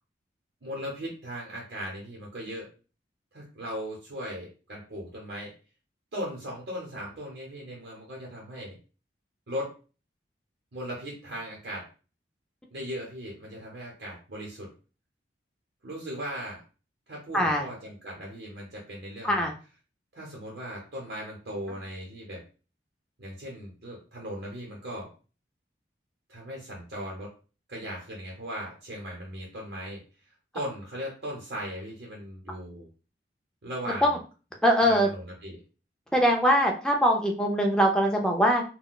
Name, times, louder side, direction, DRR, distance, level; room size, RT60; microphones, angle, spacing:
voice 1, 0.6-2.7 3.3-5.5 6.1-8.8 9.5-9.7 10.7-11.9 12.7-14.7 15.8-16.6 17.1-19.5 20.1-22.4 23.2-25.1 26.3-27.3 27.7-32.9 33.6-34.2 34.8-35.6, equal, 65° right, -3 dB, 0.8 m, -38 dB
voice 2, 17.3-17.6 19.2-19.5 34.0-34.2 34.6-35.1 36.1-38.6, equal, 5° left, 1 dB, 0.4 m, -22 dB
3.8 x 2.2 x 2.3 m, 0.35 s
head